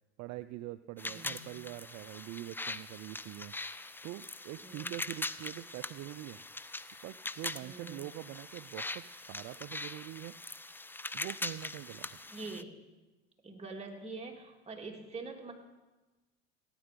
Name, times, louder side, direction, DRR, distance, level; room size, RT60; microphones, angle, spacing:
voice 1, 0.2-3.5 4.0-6.4 7.0-10.4 11.1-12.2, right 17 dB, 55° right, 13 dB, 0.5 m, -44 dB
sound 1, 1.0-12.6, left 2 dB, 5° left, 0.4 m, -42 dB
voice 2, 1.1-1.4 4.6-5.0 7.6-8.0 12.2-12.7 13.4-15.5, right 3 dB, 20° right, 0 dB, 2.8 m, -44 dB
17.0 x 9.8 x 5.2 m, 1.2 s
hypercardioid pair, 80°, 33 cm